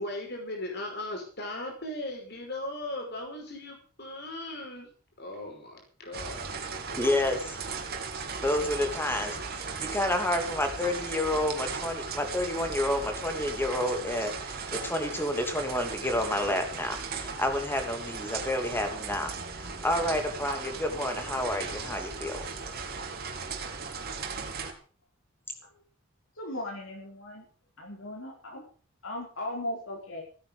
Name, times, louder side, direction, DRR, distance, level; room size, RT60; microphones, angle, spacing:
voice 1, 0.0-4.9 5.2-6.5 6.9-7.4, left 1 dB, 50° left, 2 dB, 5.4 m, -38 dB
sound 1, 6.1-24.7, right 4 dB, 45° right, 2.7 m, -37 dB
voice 2, 7.0-7.6 8.4-22.4, left 1 dB, 10° left, 6 dB, 2.6 m, -30 dB
voice 3, 26.4-27.5 27.8-28.6 29.0-30.2, left 1 dB, 70° left, -1 dB, 4.8 m, -37 dB
16.5 x 9.4 x 7.0 m, 0.40 s
head